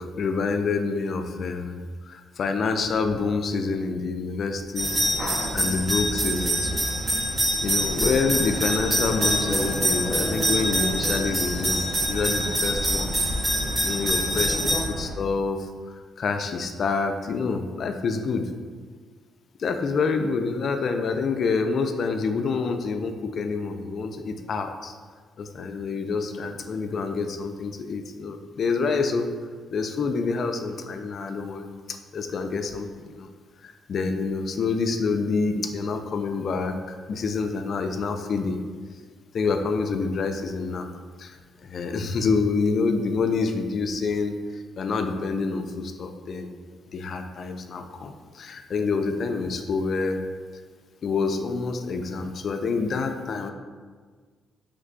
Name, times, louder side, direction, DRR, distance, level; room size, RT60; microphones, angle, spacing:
voice 1, 0.0-1.8 2.1-4.9 5.5-6.8 7.6-13.3 13.8-15.7 16.2-18.5 19.6-24.9 25.4-29.3 29.7-33.3 33.6-38.6 39.3-40.9 41.2-41.4 41.6-46.5 46.9-50.2 51.0-53.5, left 4 dB, 55° left, 6 dB, 0.3 m, -27 dB
sound 1, 4.8-14.8, right 1 dB, 25° right, 0.6 m, -25 dB
sound 2, 7.6-15.1, right 1 dB, 65° right, 0.7 m, -35 dB
3.3 x 2.2 x 3.7 m, 1.5 s
cardioid pair, 100°, 0 cm